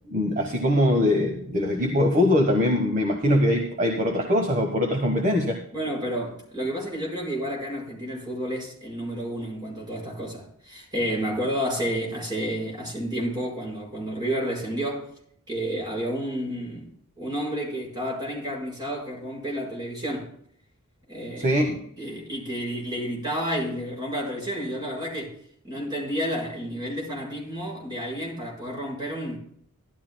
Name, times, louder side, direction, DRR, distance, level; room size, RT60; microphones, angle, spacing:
voice 1, 0.1-5.6 21.4-21.8, left 1 dB, 35° right, 1.4 m, -22 dB
voice 2, 5.7-15.1 15.5-16.9 17.2-20.3 21.1-21.6 22.0-25.4 25.6-29.4, equal, 20° right, 5.4 m, -30 dB
16.0 x 12.5 x 2.3 m
head